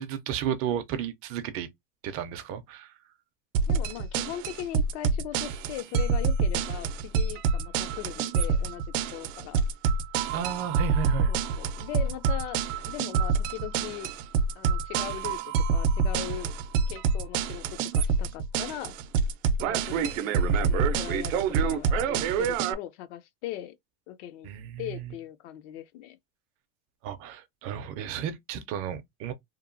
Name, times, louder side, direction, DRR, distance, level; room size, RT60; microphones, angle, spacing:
voice 1, 0.0-1.7 2.0-2.9 10.3-11.3 24.4-25.1 27.0-29.3, right 9 dB, 40° right, 0.4 m, -33 dB
sound 1, 3.5-22.7, right 5 dB, 80° right, 0.6 m, -26 dB
voice 2, 3.6-8.8 9.1-9.6 11.3-14.1 14.6-16.5 16.9-18.9 19.6-20.2 20.6-23.7 24.1-24.5 24.8-26.2, left 13 dB, 65° left, 0.5 m, -39 dB
2.9 x 2.1 x 2.5 m
supercardioid pair, 150°, 38 cm